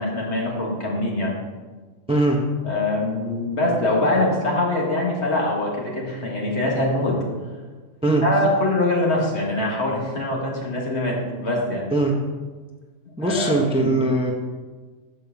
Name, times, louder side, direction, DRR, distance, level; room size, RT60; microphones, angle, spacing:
voice 1, 0.0-1.3 2.6-7.2 8.2-11.8 13.2-13.5 13.8-14.0, left 1 dB, 60° left, -2 dB, 2.0 m, -23 dB
voice 2, 2.1-2.4 8.0-8.2 11.9-12.1 13.2-14.3, right 2 dB, 5° right, 1 dB, 0.6 m, -20 dB
6.7 x 5.1 x 6.9 m, 1.4 s
omnidirectional pair, 1.3 m